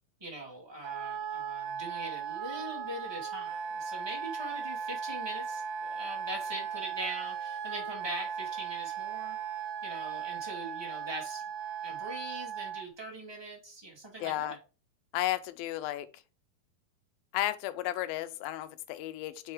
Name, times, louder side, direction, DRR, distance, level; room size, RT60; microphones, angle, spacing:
voice 1, 0.2-9.4 9.8-11.4 11.8-14.5, right 1 dB, 10° right, 1.2 m, -42 dB
Wind instrument woodwind instrument, 0.8-12.9, right 7 dB, 75° right, 2.1 m, -37 dB
voice 2, 14.2-14.6 15.1-16.1 17.3-19.5, left 14 dB, 90° left, 2.4 m, -33 dB
5.3 x 4.6 x 4.7 m
omnidirectional pair, 4.1 m